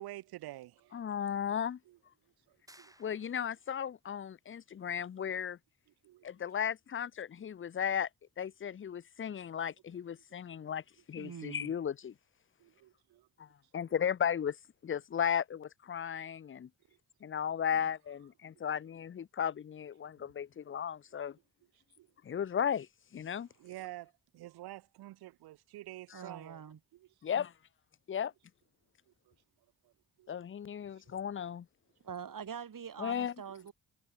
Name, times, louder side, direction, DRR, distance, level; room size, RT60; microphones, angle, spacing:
voice 1, 0.0-1.0 1.9-2.0 2.5-2.9 6.0-6.3 10.3-10.7 12.6-13.3 13.8-13.9 17.7-17.9 22.0-22.1 23.6-26.6 26.9-27.1 29.3-29.4 29.8-29.9 30.2-30.3 31.0-31.2 33.5-33.7, right 16 dB, 85° right, 0.9 m, -49 dB
voice 2, 0.9-1.8 3.0-5.6 6.2-8.1 8.4-10.8 11.1-12.1 13.4-13.5 13.7-14.6 14.8-16.7 17.2-21.4 22.2-22.9 23.1-23.5 27.2-27.5 28.1-28.3 30.3-31.7 33.0-33.3, left 8 dB, 35° left, 0.6 m, -35 dB
sound 1, 2.7-3.8, right 1 dB, 10° right, 7.9 m, -61 dB
voice 3, 11.2-11.7 23.3-23.4 26.1-26.8 32.0-33.7, right 7 dB, 60° right, 5.3 m, -44 dB
supercardioid pair, 55°, 37 cm